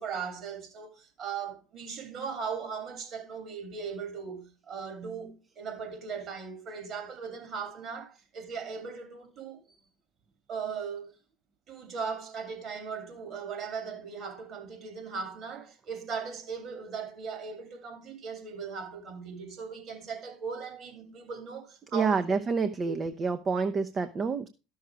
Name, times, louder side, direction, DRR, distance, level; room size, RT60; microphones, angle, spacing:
voice 1, 0.0-9.6 10.5-11.1 11.7-22.2 22.8-22.9, right 6 dB, 50° right, 3.0 m, -38 dB
voice 2, 21.9-24.5, right 5 dB, 35° right, 0.7 m, -28 dB
12.0 x 6.4 x 4.6 m
hypercardioid pair, 75°, 0 cm